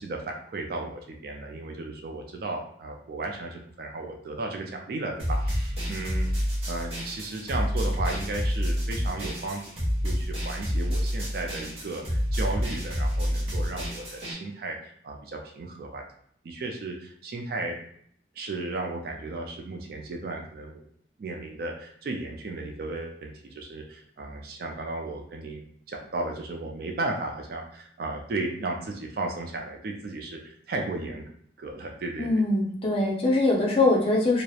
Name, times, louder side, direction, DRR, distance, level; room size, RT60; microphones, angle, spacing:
voice 1, 0.0-9.6 10.0-16.0 16.4-17.8 18.4-20.8 21.2-25.6 25.9-31.2 31.6-32.4, right 2 dB, 55° right, 2 dB, 0.3 m, -35 dB
sound 1, 5.2-14.3, equal, 30° right, 0.7 m, -28 dB
voice 2, 32.2-34.4, left 2 dB, 30° left, -1 dB, 0.5 m, -22 dB
2.8 x 2.0 x 2.3 m, 0.64 s
head